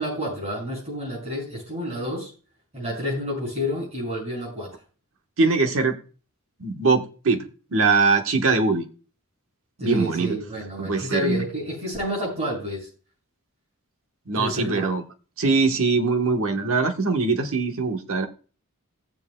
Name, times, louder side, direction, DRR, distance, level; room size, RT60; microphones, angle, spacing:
voice 1, 0.0-2.3 2.7-4.7 9.8-12.9 14.3-14.9, equal, 30° right, -4 dB, 6.3 m, -29 dB
voice 2, 5.4-6.0 6.6-8.8 9.8-10.4 10.8-11.4 14.3-15.0 15.4-18.3, right 4 dB, 65° right, 5 dB, 1.1 m, -22 dB
17.5 x 7.5 x 2.2 m, 0.37 s
head